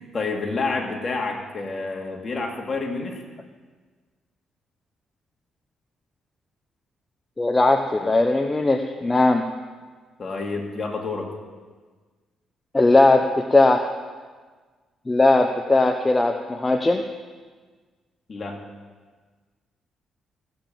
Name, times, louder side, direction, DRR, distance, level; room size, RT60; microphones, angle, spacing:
voice 1, 0.0-3.2 7.9-8.2 10.2-11.3 18.3-18.6, left 3 dB, 40° left, 1 dB, 2.3 m, -29 dB
voice 2, 7.4-9.4 12.7-13.8 15.1-17.0, left 2 dB, 20° left, 5 dB, 0.8 m, -19 dB
15.5 x 7.0 x 7.5 m, 1.4 s
cardioid pair, 90°, 0 cm